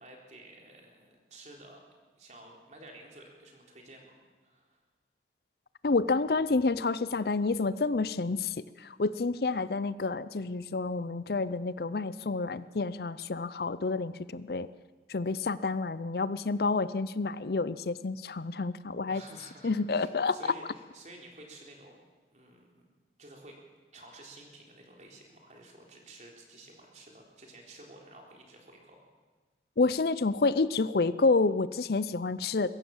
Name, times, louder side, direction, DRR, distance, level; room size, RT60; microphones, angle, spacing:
voice 1, 0.0-1.8 2.2-4.8 19.1-22.0 22.3-22.8 23.2-23.6 23.9-29.0, right 1 dB, 40° right, 0 dB, 3.8 m, -52 dB
voice 2, 5.8-14.7 15.1-19.2 19.6-20.4 29.8-32.7, left 3 dB, 60° left, 16 dB, 0.5 m, -29 dB
22.5 x 15.5 x 7.2 m, 1.3 s
head